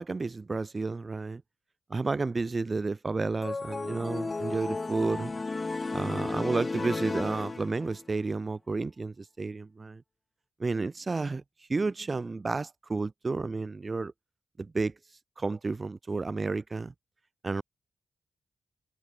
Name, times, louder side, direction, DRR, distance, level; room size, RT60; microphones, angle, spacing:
voice 1, 0.0-1.4 1.9-5.3 5.9-10.0 10.6-11.4 11.7-14.1 14.6-14.9 15.4-16.9 17.4-17.6, right 3 dB, 35° right, 0.8 m, -31 dB
sound 1, 3.4-8.1, left 3 dB, 35° left, 0.3 m, -34 dB
cardioid pair, 75°, 0 cm